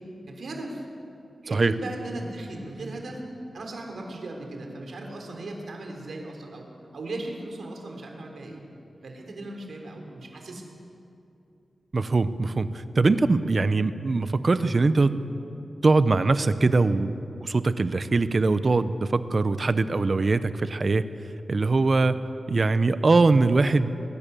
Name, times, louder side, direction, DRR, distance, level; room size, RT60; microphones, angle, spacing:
voice 1, 0.3-0.8 1.4-3.2 3.5-6.7 6.9-8.6 9.0-10.6, right 2 dB, 70° right, 2 dB, 3.5 m, -37 dB
voice 2, 11.9-15.1 15.8-17.1 17.4-21.0 21.5-22.2 22.5-23.9, right 3 dB, 40° right, 12 dB, 0.8 m, -22 dB
22.0 x 20.5 x 6.9 m, 2.7 s
wide cardioid pair, 160°, 0 cm